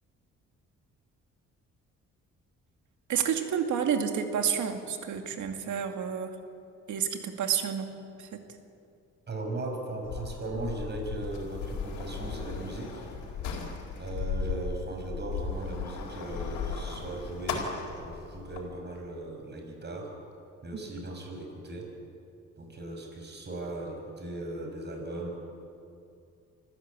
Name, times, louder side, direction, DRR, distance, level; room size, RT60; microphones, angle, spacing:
voice 1, 3.1-6.3 6.9-7.9 8.2-8.4, right 7 dB, 75° right, 5 dB, 2.4 m, -30 dB
voice 2, 9.3-13.1 14.0-20.1 20.6-21.9 22.6-25.4, right 2 dB, 35° right, 2 dB, 5.7 m, -38 dB
Sliding door, 10.0-18.6, left 5 dB, 90° left, 4.2 m, -36 dB
25.5 x 15.0 x 8.5 m, 2.6 s
cardioid pair, 90°, 30 cm